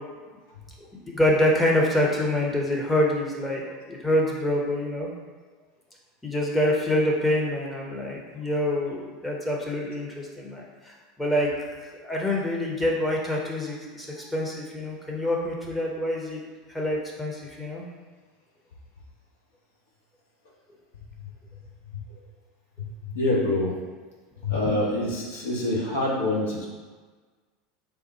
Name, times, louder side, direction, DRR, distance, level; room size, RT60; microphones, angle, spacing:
voice 1, 1.1-5.1 6.2-11.5 12.0-16.4 16.7-17.8 24.6-24.7, left 1 dB, 5° left, -2 dB, 0.9 m, -26 dB
voice 2, 22.8-23.7 24.4-26.7, left 2 dB, 70° left, -4 dB, 1.0 m, -26 dB
3.5 x 2.4 x 4.2 m, 1.4 s
figure-of-eight pair, 80°, 0 cm